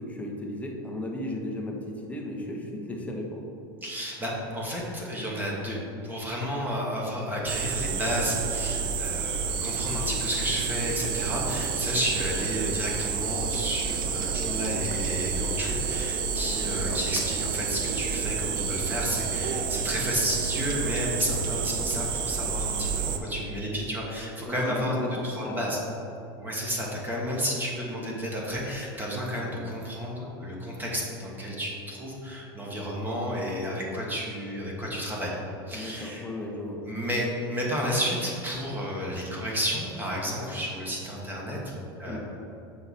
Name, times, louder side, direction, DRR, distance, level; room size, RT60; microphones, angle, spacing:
voice 1, 0.0-3.5 16.8-17.0 24.5-25.6 35.7-36.8 42.1-42.2, left 1 dB, 10° left, 0 dB, 0.9 m, -35 dB
voice 2, 3.8-5.8 6.0-24.9 25.2-25.8 26.4-35.3 35.7-36.3 36.8-41.6 42.0-42.2, equal, 15° right, -3 dB, 1.4 m, -31 dB
sound 1, 7.5-23.2, right 6 dB, 35° right, 0.6 m, -29 dB
6.6 x 4.7 x 4.2 m, 2.9 s
supercardioid pair, 120°, 13 cm